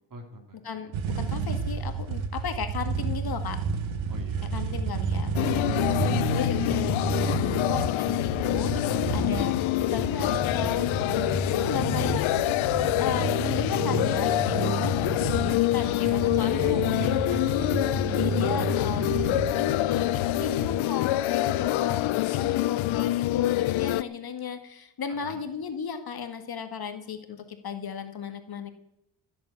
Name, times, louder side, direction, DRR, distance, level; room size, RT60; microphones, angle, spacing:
voice 1, 0.1-0.8 1.0-1.2 4.1-4.5 4.9-5.3 5.7-6.5 16.0-16.5 17.0-18.0 25.1-25.4, right 2 dB, 45° right, 4 dB, 3.9 m, -43 dB
sound 1, 0.9-20.7, right 5 dB, 85° right, 1.5 m, -31 dB
voice 2, 1.2-3.6 4.4-7.0 7.4-12.4 13.0-17.4 18.1-28.7, left 7 dB, 50° left, 7 dB, 1.9 m, -35 dB
sound 2, 5.3-24.0, left 16 dB, 85° left, 0.6 m, -26 dB
15.5 x 7.9 x 8.5 m, 0.85 s
cardioid pair, 100°, 46 cm